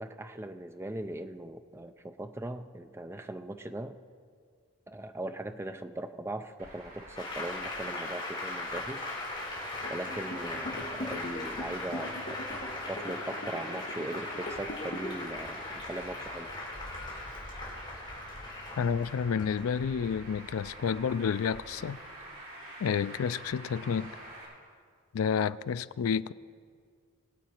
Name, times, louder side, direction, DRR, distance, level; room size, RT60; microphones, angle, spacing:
voice 1, 0.0-4.0 4.9-9.0 9.9-12.4 12.9-16.5, right 1 dB, 10° right, 0.4 m, -39 dB
Traffic noise roadway noise, 6.6-24.4, right 1 dB, 60° right, 4.4 m, -47 dB
Applause, 7.1-20.1, left 2 dB, 20° left, 3.8 m, -39 dB
sound 1, 9.8-15.1, left 1 dB, 40° left, 1.1 m, -42 dB
voice 2, 18.8-22.0 22.8-24.2 25.1-26.3, left 7 dB, 70° left, 0.3 m, -30 dB
22.0 x 8.2 x 4.5 m
head